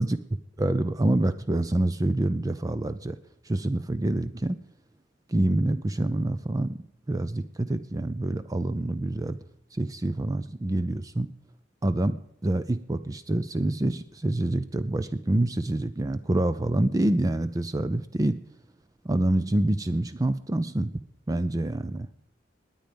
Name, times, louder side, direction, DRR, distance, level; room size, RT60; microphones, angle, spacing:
voice 1, 0.6-3.2 3.4-4.6 5.3-6.8 7.1-9.4 9.7-11.3 11.8-12.2 12.4-18.4 19.0-20.9 21.3-22.1, right 1 dB, 20° right, 12 dB, 0.5 m, -26 dB
20.5 x 9.0 x 5.2 m, 0.75 s
head